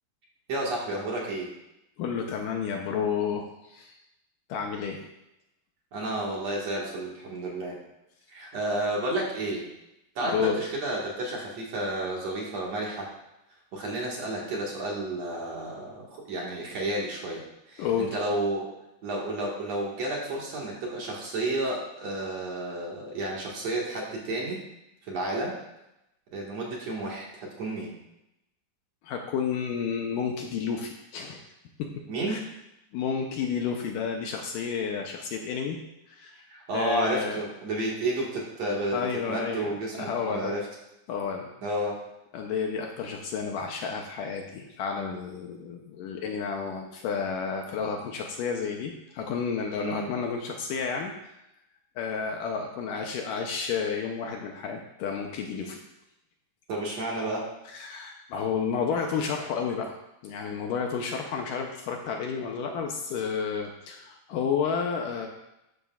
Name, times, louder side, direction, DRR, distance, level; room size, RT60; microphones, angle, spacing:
voice 1, 0.5-1.5 5.9-7.8 8.3-9.6 10.2-13.1 13.7-18.7 19.0-24.6 25.0-25.6 26.3-27.9 32.1-32.4 36.5-40.7 41.6-42.0 49.8-50.1 56.7-57.5, right 1 dB, 50° right, -3 dB, 2.7 m, -31 dB
voice 2, 2.0-4.0 4.5-5.0 10.2-10.6 17.8-18.2 29.0-31.4 31.8-31.9 32.3-32.4 32.9-35.8 36.1-36.4 36.7-37.4 38.9-40.5 41.1-41.5 42.3-51.1 52.0-55.8 57.7-60.0 60.2-65.3, left 6 dB, 75° left, 2 dB, 2.2 m, -31 dB
13.0 x 9.9 x 2.5 m, 0.87 s
omnidirectional pair, 4.3 m